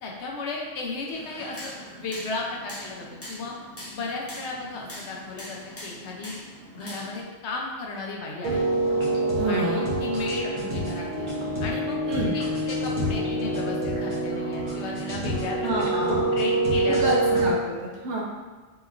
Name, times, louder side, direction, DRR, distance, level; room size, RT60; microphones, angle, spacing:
voice 1, 0.0-1.7 2.0-3.5 3.9-6.3 6.7-8.7 9.5-11.3 11.6-12.0 12.3-15.6 15.8-17.4, left 3 dB, 75° left, -1 dB, 0.9 m, -34 dB
sound 1, 1.1-7.2, equal, 15° left, 0.6 m, -42 dB
sound 2, 8.4-17.5, right 1 dB, 30° right, 0.8 m, -26 dB
voice 2, 9.4-9.9 12.1-12.3 15.6-16.4 16.9-18.2, right 1 dB, 80° right, -3 dB, 1.1 m, -28 dB
4.0 x 2.9 x 2.5 m, 1.4 s
omnidirectional pair, 1.2 m